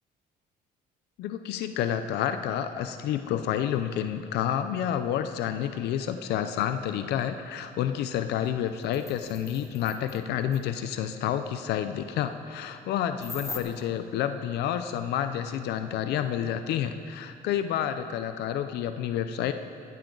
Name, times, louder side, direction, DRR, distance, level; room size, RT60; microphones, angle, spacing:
voice 1, 1.2-19.5, left 10 dB, 80° left, 9 dB, 0.6 m, -29 dB
sound 1, 8.5-8.6 8.8-10.2 10.5-10.6 13.2-13.6, left 3 dB, 15° left, 1.2 m, -41 dB
16.0 x 14.0 x 3.9 m, 2.7 s
cardioid pair, 110°, 17 cm